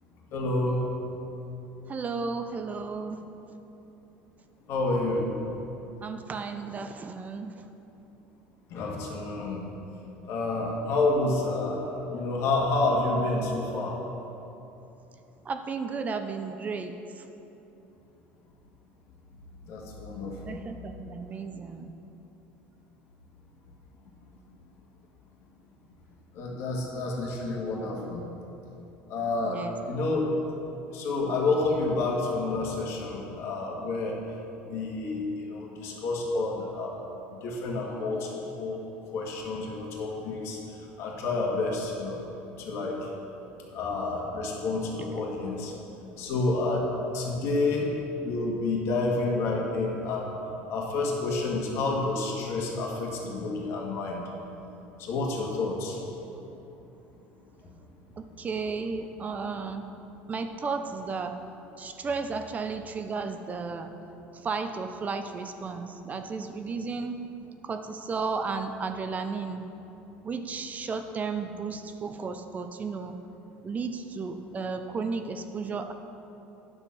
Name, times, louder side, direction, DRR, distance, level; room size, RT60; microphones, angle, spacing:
voice 1, 0.3-0.8 4.7-5.3 8.7-9.6 10.3-14.0 19.7-20.6 26.3-28.2 29.1-29.6 29.9-30.3 30.9-34.2 34.7-37.0 37.3-38.8 39.1-40.6 41.0-42.2 42.6-43.1 43.7-45.7 46.1-46.9 47.1-50.3 50.7-54.2 55.0-56.0, left 2 dB, 60° left, -2 dB, 1.9 m, -29 dB
voice 2, 1.9-3.3 6.0-7.6 15.5-17.2 20.5-21.9 29.4-29.7 58.2-59.9 60.3-61.4 61.8-63.9 64.4-67.2 67.6-69.6 70.2-73.2 73.6-75.9, right 4 dB, 30° right, 7 dB, 0.6 m, -34 dB
9.8 x 6.6 x 5.6 m, 3.0 s
supercardioid pair, 105°, 5 cm